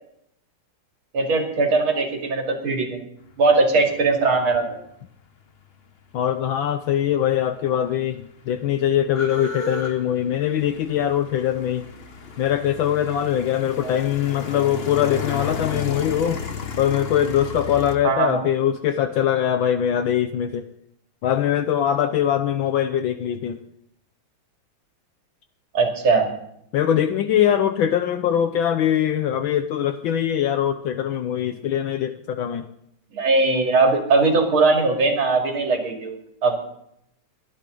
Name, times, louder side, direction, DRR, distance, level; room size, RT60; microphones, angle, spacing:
voice 1, 1.1-3.0 3.4-4.7 13.8-14.0 18.0-18.4 25.7-26.3 33.1-36.6, right 3 dB, 75° right, 2 dB, 3.3 m, -20 dB
voice 2, 6.1-11.8 12.4-16.5 16.8-20.7 21.2-23.6 26.7-32.7, left 10 dB, 75° left, 9 dB, 1.4 m, -22 dB
sound 1, 7.3-7.4 7.6-18.0, left 5 dB, 35° left, 1.0 m, -33 dB
20.5 x 11.5 x 3.9 m, 0.76 s
omnidirectional pair, 2.3 m